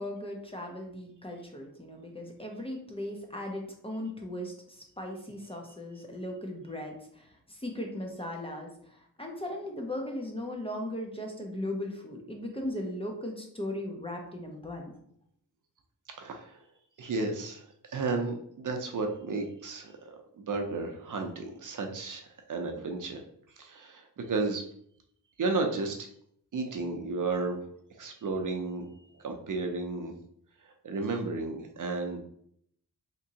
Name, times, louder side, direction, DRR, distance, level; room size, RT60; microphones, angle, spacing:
voice 1, 0.0-14.9, left 1 dB, 15° left, 1 dB, 0.5 m, -38 dB
voice 2, 16.2-16.6 17.0-19.9 20.4-23.2 23.5-24.6 25.4-26.0 26.5-27.6 28.0-28.8 29.1-30.1 30.6-32.2, right 3 dB, 55° right, 3 dB, 0.6 m, -33 dB
3.4 x 2.9 x 2.8 m, 0.67 s
wide cardioid pair, 125°, 38 cm